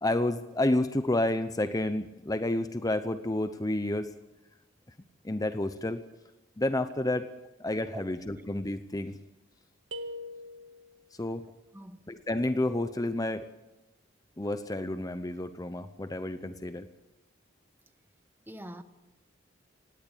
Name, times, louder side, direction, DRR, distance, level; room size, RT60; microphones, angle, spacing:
voice 1, 0.0-4.1 5.2-6.0 6.6-7.3 7.6-9.2 11.2-11.4 12.1-13.5 14.4-16.9, left 1 dB, 20° left, 0.8 m, -30 dB
voice 2, 7.9-8.5 11.7-12.1 18.5-18.8, right 1 dB, 10° right, 1.2 m, -44 dB
sound 1, 9.9-11.1, left 1 dB, 75° right, 1.7 m, -41 dB
19.0 x 17.5 x 8.4 m
head